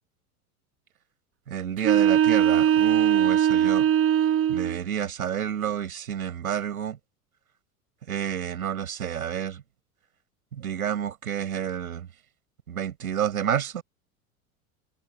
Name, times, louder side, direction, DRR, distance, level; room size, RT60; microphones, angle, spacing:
voice 1, 1.5-3.9 4.5-7.0 8.1-9.6 10.5-12.1 12.7-13.8, right 9 dB, 70° right, 7.3 m, -29 dB
sound 1, 1.8-4.8, right 10 dB, 30° right, 4.9 m, -20 dB
figure-of-eight pair, 80°, 45 cm